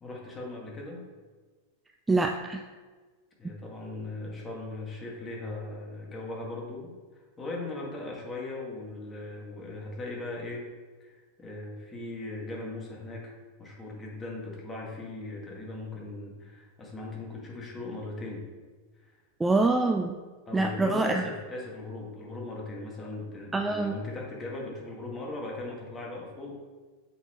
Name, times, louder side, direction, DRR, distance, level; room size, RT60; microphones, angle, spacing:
voice 1, 0.0-1.0 3.4-10.7 11.0-13.3 13.6-18.5 19.0-19.1 20.5-26.5, left 2 dB, 20° left, -2 dB, 1.8 m, -38 dB
voice 2, 2.1-2.6 19.4-20.2 20.5-21.2 23.5-23.9, right 3 dB, 10° right, 4 dB, 0.3 m, -25 dB
7.9 x 4.2 x 3.0 m, 1.4 s
hypercardioid pair, 105°, 0 cm